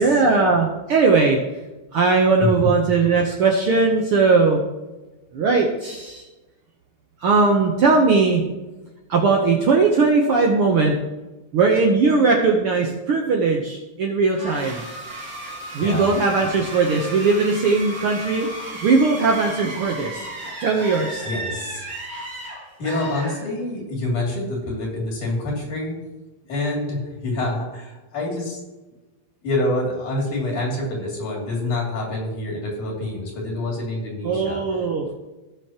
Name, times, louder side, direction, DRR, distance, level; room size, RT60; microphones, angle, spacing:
voice 1, 0.0-1.4 1.9-4.6 5.3-6.2 7.2-8.4 9.1-11.0 11.5-14.8 15.7-21.2 34.2-35.1, right 4 dB, 65° right, 1 dB, 1.4 m, -19 dB
voice 2, 2.4-2.7 15.8-16.1 21.3-21.9 22.8-25.9 26.5-28.6 29.4-34.6, left 2 dB, 75° left, -3 dB, 4.3 m, -26 dB
sound 1, 14.3-23.9, right 1 dB, 30° right, 2.6 m, -34 dB
17.5 x 6.9 x 2.9 m, 1.1 s
omnidirectional pair, 3.5 m